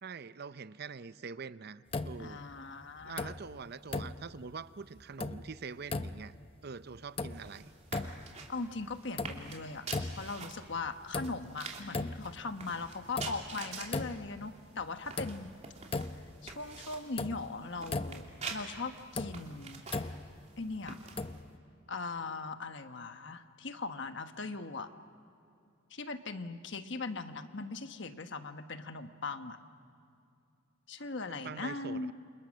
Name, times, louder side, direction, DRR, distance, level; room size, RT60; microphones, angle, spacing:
voice 1, 0.0-2.4 3.0-6.3 6.6-7.7 31.2-32.1, right 5 dB, 55° right, 14 dB, 0.6 m, -44 dB
sound 1, 1.9-2.6 3.0-3.6 3.9-4.6 5.0-5.6 5.8-6.5 6.9-7.6 7.9-8.5 8.9-9.6 9.9-10.5 10.9-11.6 11.9-12.5 12.9-14.4 14.8-14.9 15.2-16.4 16.7-16.8 17.2-18.4 18.9-20.4 21.2-21.6, left 3 dB, 30° left, 0.7 m, -38 dB
voice 2, 2.2-3.3 8.5-15.5 16.4-19.8 20.6-21.0 21.9-24.9 25.9-29.6 30.9-32.1, left 3 dB, 65° left, 8 dB, 1.3 m, -40 dB
sound 2, 7.3-21.4, right 4 dB, 35° right, 3.0 m, -47 dB
29.5 x 27.5 x 6.3 m, 2.6 s
head